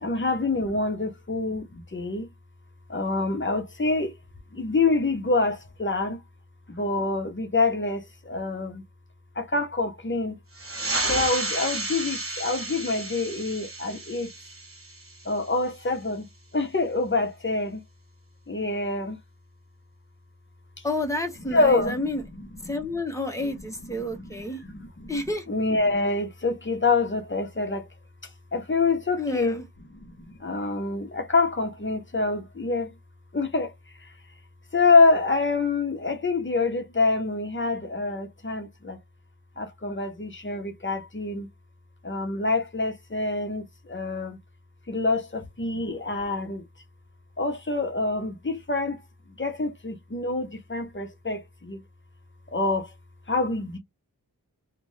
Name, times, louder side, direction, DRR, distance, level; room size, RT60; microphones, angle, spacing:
voice 1, 0.0-2.3 2.9-4.1 4.5-6.2 6.7-8.8 9.4-10.4 11.0-14.3 15.2-16.2 16.5-17.8 18.5-19.2 21.4-22.1 22.3-22.7 23.8-27.9 28.5-29.6 29.9-32.9 33.3-33.7 34.7-39.0 39.6-41.5 42.0-44.4 44.9-46.6 47.4-49.0 49.4-51.8 52.5-52.9 53.3-53.8, left 3 dB, 35° left, 0.8 m, -26 dB
sound 1, 10.5-15.7, right 2 dB, 40° right, 1.2 m, -32 dB
voice 2, 20.8-22.2 22.7-24.6 25.1-25.4 29.2-29.6, left 1 dB, 10° left, 1.0 m, -30 dB
2.6 x 2.5 x 3.2 m
wide cardioid pair, 80°, 36 cm